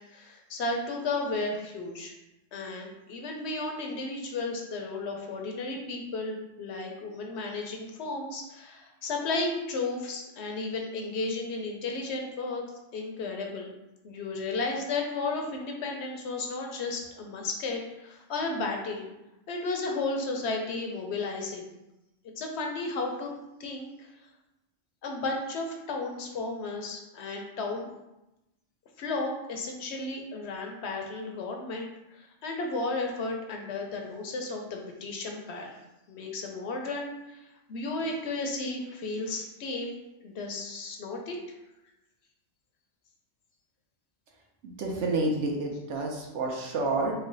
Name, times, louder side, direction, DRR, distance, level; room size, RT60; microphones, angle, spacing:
voice 1, 0.0-2.2 2.5-12.6 12.9-13.7 14.0-19.1 19.5-21.7 22.4-23.3 23.6-24.1 25.0-27.9 29.0-35.7 36.1-39.9 40.2-41.4 46.1-46.3, left 3 dB, 65° left, 2 dB, 0.8 m, -33 dB
voice 2, 44.6-47.1, right 2 dB, 70° right, 0 dB, 1.0 m, -29 dB
3.1 x 2.2 x 3.7 m, 0.94 s
omnidirectional pair, 1.3 m